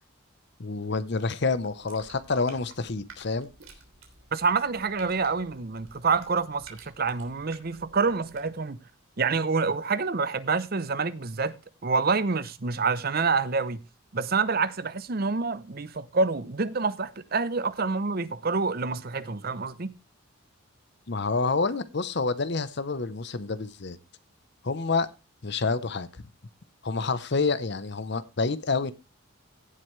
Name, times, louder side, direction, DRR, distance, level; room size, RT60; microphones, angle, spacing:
voice 1, 0.6-3.5 21.1-24.0 24.6-25.1 25.4-26.3 26.8-28.9, left 4 dB, 55° left, 0.8 m, -28 dB
sound 1, 1.4-8.7, right 4 dB, 75° right, 3.2 m, -53 dB
voice 2, 4.3-8.8 9.2-11.6 11.8-13.8 14.1-19.9, right 4 dB, 45° right, 0.7 m, -27 dB
16.5 x 7.8 x 3.2 m
head